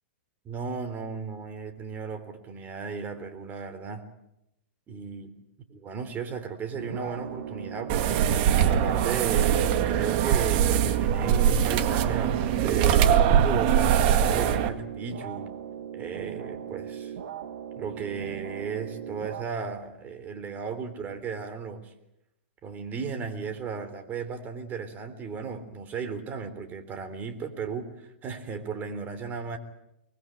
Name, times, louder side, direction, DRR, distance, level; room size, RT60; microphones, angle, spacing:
voice 1, 0.5-4.0 4.9-5.4 5.7-9.6 9.9-15.5 15.9-17.1 17.8-21.9 22.6-29.6, right 5 dB, 30° right, 9 dB, 3.5 m, -35 dB
sound 1, 6.8-19.4, right 9 dB, 70° right, 2.1 m, -38 dB
sound 2, 7.9-14.7, right 9 dB, 50° right, 2.0 m, -22 dB
24.5 x 20.0 x 9.0 m, 0.85 s
hypercardioid pair, 125°, 6 cm